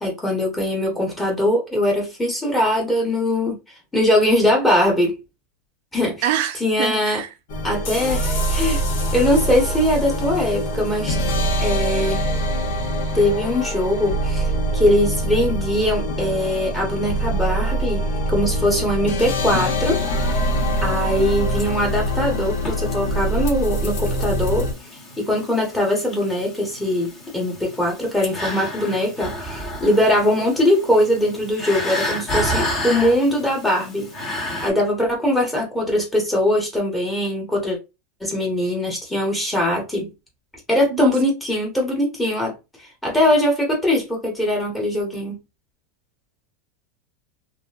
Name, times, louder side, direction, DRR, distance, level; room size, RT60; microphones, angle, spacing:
voice 1, 0.0-3.6 3.9-5.2 5.9-6.2 6.6-7.2 7.6-8.8 9.1-11.2 11.6-12.2 13.1-14.4 14.7-20.0 20.8-24.7 25.2-34.1 34.6-37.8 38.2-40.1 40.7-42.6 43.0-45.4, left 1 dB, 10° left, 1.2 m, -21 dB
voice 2, 6.2-7.3 40.9-41.1, right 11 dB, 55° right, 0.5 m, -25 dB
sound 1, 7.5-24.7, equal, 65° left, 1.1 m, -24 dB
sound 2, 19.3-34.7, equal, 25° left, 1.2 m, -32 dB
2.9 x 2.7 x 2.4 m
supercardioid pair, 160°, 0 cm